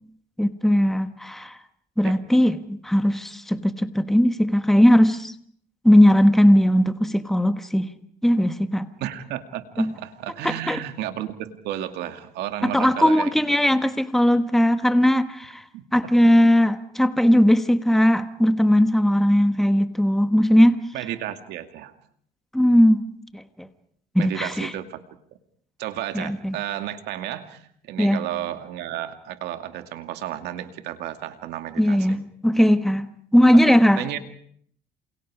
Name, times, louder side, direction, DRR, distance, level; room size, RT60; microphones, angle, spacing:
voice 1, 0.4-1.6 2.0-5.3 5.8-7.9 8.2-8.9 9.8-9.9 10.4-10.8 12.6-15.6 15.9-20.8 22.5-23.0 23.3-23.7 24.1-24.7 26.1-26.6 28.0-28.2 31.8-34.0, equal, ahead, 1.3 m, -18 dB
voice 2, 9.0-13.3 15.7-15.8 20.9-21.9 24.2-25.0 25.8-32.2 33.7-34.2, right 12 dB, 85° right, 2.4 m, -32 dB
28.5 x 28.5 x 5.0 m
cardioid pair, 110°, 17 cm